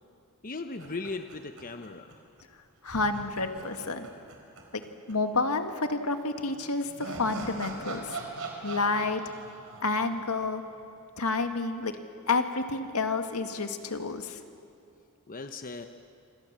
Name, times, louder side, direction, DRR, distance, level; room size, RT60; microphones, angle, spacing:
voice 1, 0.4-2.2 15.3-15.9, left 3 dB, 40° left, 7 dB, 0.9 m, -38 dB
sound 1, 0.8-2.1 2.4-2.5 2.9-5.1 5.4-5.5 6.5-10.8, right 3 dB, 70° right, 4.6 m, -41 dB
voice 2, 2.8-4.1 4.7-4.8 5.1-8.1 8.6-9.3 9.8-10.6 11.2-12.0 12.3-14.4, left 3 dB, 80° left, 6 dB, 1.9 m, -29 dB
26.5 x 26.5 x 7.5 m, 2.5 s
head